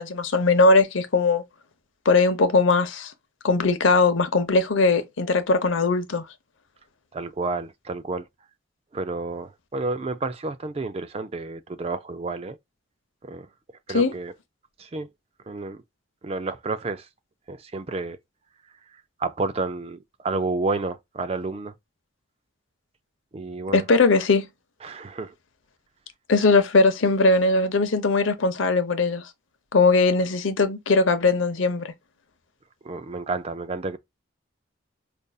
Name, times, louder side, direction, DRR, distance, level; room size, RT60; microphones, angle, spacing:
voice 1, 0.0-1.4 2.1-3.1 3.4-6.2 13.9-14.1 23.7-24.5 26.3-29.2 29.7-31.9, left 3 dB, 75° left, 0.7 m, -20 dB
voice 2, 7.1-8.2 8.9-12.6 13.3-13.5 13.9-14.3 14.8-15.1 15.5-15.8 16.2-17.0 17.5-18.2 19.2-20.0 20.2-21.7 23.3-23.8 24.8-25.3 32.8-34.0, right 3 dB, 30° right, 0.3 m, -30 dB
5.3 x 2.5 x 2.3 m
head